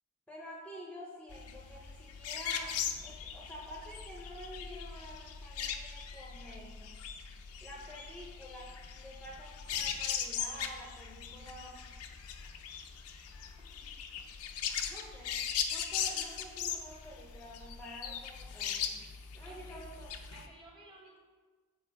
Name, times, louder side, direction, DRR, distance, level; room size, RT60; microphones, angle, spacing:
voice 1, 0.3-7.0 7.6-11.8 14.9-15.4 15.6-19.0 19.3-20.1, equal, 5° left, -4 dB, 0.7 m, -49 dB
sound 1, 1.3-20.5, left 8 dB, 75° left, 0.5 m, -39 dB
voice 2, 19.5-19.9 20.3-21.2, right 1 dB, 20° right, -2 dB, 1.3 m, -55 dB
7.0 x 4.4 x 3.5 m, 1.4 s
head